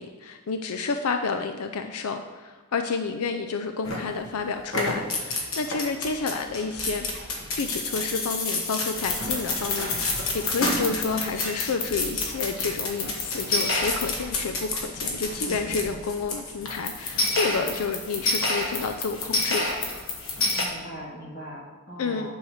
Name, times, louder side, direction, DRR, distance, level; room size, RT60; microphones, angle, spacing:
voice 1, 0.0-7.1 7.5-19.8 22.0-22.3, left 4 dB, 85° left, 7 dB, 0.5 m, -30 dB
sound 1, 3.8-4.3 4.6-20.7, left 2 dB, 70° left, 1.5 m, -29 dB
voice 2, 15.4-16.0 20.5-22.3, right 1 dB, 45° left, -3 dB, 2.0 m, -40 dB
9.2 x 4.7 x 6.4 m, 1.3 s
head